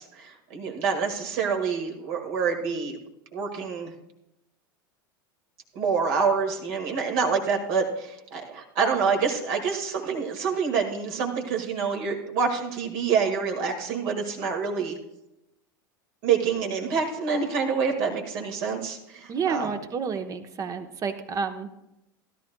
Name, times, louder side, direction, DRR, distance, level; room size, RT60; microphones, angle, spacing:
voice 1, 0.0-3.0 3.3-3.9 5.7-15.0 16.2-19.7, right 5 dB, 55° right, 2 dB, 2.0 m, -27 dB
voice 2, 19.3-21.7, right 6 dB, 30° right, 8 dB, 1.1 m, -30 dB
16.5 x 12.0 x 2.3 m, 0.89 s
figure-of-eight pair, 80°, 11 cm